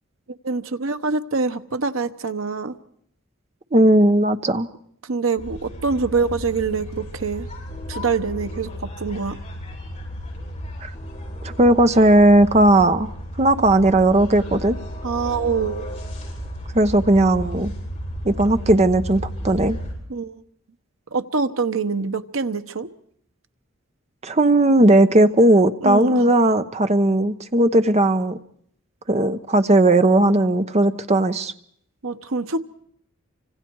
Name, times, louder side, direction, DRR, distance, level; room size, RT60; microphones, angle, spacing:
voice 1, 0.4-2.7 5.0-7.5 7.9-9.4 15.0-15.9 20.1-20.4 21.1-22.9 25.8-26.3 32.0-32.6, right 4 dB, 80° right, 1.1 m, -25 dB
voice 2, 3.7-4.7 10.8-10.9 11.4-13.1 13.4-14.8 16.7-17.7 18.2-19.8 24.2-28.4 29.1-31.5, right 1 dB, 30° right, 1.0 m, -17 dB
sound 1, 5.4-19.9, equal, 30° left, 7.6 m, -33 dB
29.5 x 25.5 x 4.7 m
head